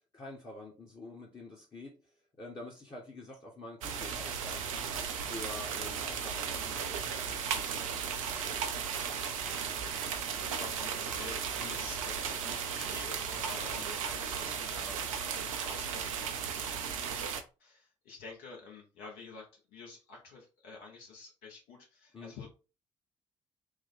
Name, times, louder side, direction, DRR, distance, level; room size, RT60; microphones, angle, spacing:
voice 1, 0.1-4.9 5.2-8.6 11.6-11.8 22.1-22.4, left 2 dB, 30° left, -3 dB, 1.0 m, -47 dB
sound 1, 3.8-17.4, right 7 dB, 75° right, 0.4 m, -35 dB
voice 2, 10.6-16.3 17.6-22.5, left 4 dB, 65° left, -1 dB, 0.9 m, -49 dB
3.2 x 2.1 x 3.7 m, 0.32 s
figure-of-eight pair, 45°, 17 cm